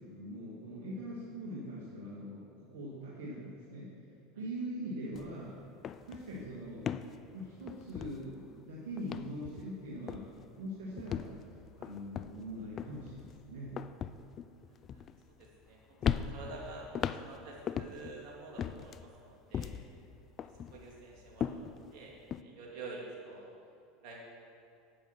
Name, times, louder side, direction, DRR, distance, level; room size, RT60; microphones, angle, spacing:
voice 1, 0.0-3.9 4.3-5.6 6.1-6.8 7.3-10.3 10.6-11.2 11.8-13.8 19.9-20.0, equal, 70° right, -6 dB, 1.8 m, -42 dB
sound 1, 5.1-5.3 5.6-8.6 9.0-9.8 10.1-10.5 11.0-15.7 16.0-18.2 18.6-20.0 20.4-22.4, left 8 dB, 40° left, 0.4 m, -39 dB
voice 2, 14.6-15.0 15.4-16.9 17.3-19.7 20.7-21.5 21.9-22.1 22.4-23.5 24.0-24.2, right 3 dB, 55° right, -3 dB, 2.6 m, -48 dB
8.4 x 8.1 x 5.9 m, 2.4 s
hypercardioid pair, 80°, 0 cm